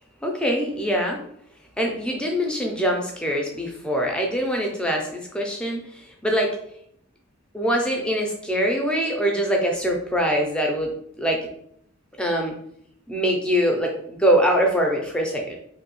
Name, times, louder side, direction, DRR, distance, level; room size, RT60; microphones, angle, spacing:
voice 1, 0.2-1.2 1.8-6.6 7.5-11.5 12.2-12.5 13.1-15.6, equal, 5° left, 1 dB, 0.4 m, -23 dB
2.9 x 2.6 x 3.0 m, 0.70 s
head